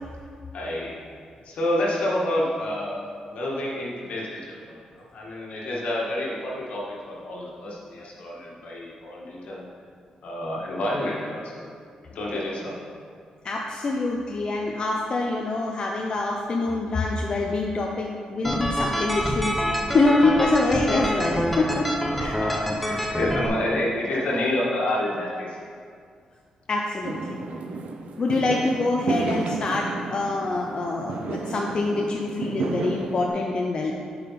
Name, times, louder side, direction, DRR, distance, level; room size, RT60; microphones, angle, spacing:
voice 1, 0.5-0.9 1.4-9.7 10.2-11.7 12.1-12.7 22.2-25.6, left 1 dB, 70° left, -4 dB, 1.6 m, -29 dB
voice 2, 13.4-19.5 19.9-21.9 22.2-22.4 26.7-27.4 28.2-33.9, left 3 dB, 40° left, 0 dB, 0.6 m, -25 dB
sound 1, 18.4-23.5, equal, 5° left, 0.7 m, -26 dB
Fireworks, 27.0-33.3, right 4 dB, 70° right, 0.6 m, -32 dB
7.8 x 5.6 x 4.2 m, 2.2 s
cardioid pair, 135°, 2 cm